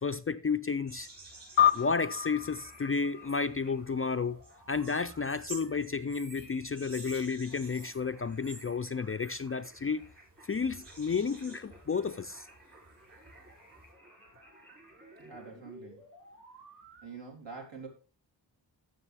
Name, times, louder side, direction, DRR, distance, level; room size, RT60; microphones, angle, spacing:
voice 1, 0.0-1.1 1.7-4.4 4.7-10.1 10.4-12.5, left 5 dB, 30° left, 0.4 m, -32 dB
sound 1, 0.8-17.1, right 1 dB, 30° right, 3.3 m, -56 dB
sound 2, 0.9-13.9, right 2 dB, 45° right, 5.8 m, -52 dB
sound 3, 1.6-4.3, left 10 dB, 85° left, 0.6 m, -30 dB
voice 2, 15.2-16.0 17.0-17.9, right 5 dB, 70° right, 3.6 m, -45 dB
15.0 x 6.4 x 3.4 m
wide cardioid pair, 135°, 45 cm